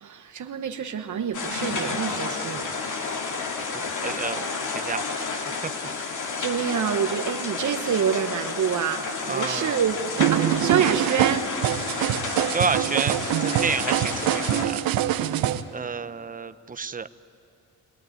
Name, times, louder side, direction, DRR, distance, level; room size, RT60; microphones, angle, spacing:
voice 1, 0.0-2.7 6.4-10.0 10.3-11.5, right 7 dB, 60° right, 7 dB, 1.2 m, -27 dB
sound 1, 1.3-14.6, left 4 dB, 60° left, 2.4 m, -31 dB
voice 2, 3.6-5.7 9.3-9.8 12.5-14.8 15.7-17.1, right 5 dB, 25° right, 13 dB, 0.8 m, -30 dB
sound 2, 10.2-15.6, right 12 dB, 85° right, 0.9 m, -24 dB
23.0 x 18.5 x 9.3 m, 2.5 s
cardioid pair, 75°, 34 cm